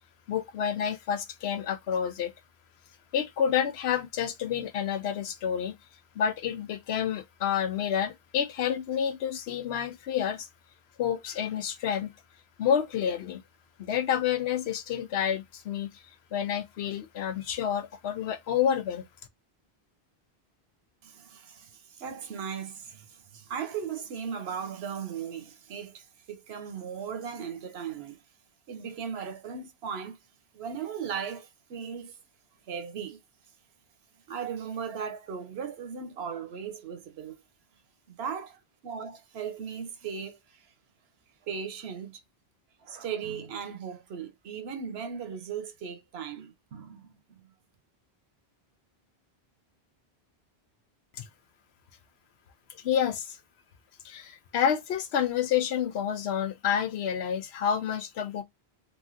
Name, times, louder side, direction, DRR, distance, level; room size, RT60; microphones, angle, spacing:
voice 1, 0.3-2.3 3.1-5.7 6.2-10.5 11.0-12.1 12.6-13.4 13.8-15.9 16.3-19.0 51.2-51.3 52.8-53.4 54.0-58.4, left 8 dB, 80° left, 0.9 m, -29 dB
voice 2, 21.0-28.2 28.7-30.2 30.5-32.2 32.7-33.2 34.3-37.4 38.1-40.7 41.5-42.2 42.8-47.1, right 7 dB, 75° right, 0.9 m, -37 dB
3.1 x 2.5 x 2.4 m
omnidirectional pair, 1.1 m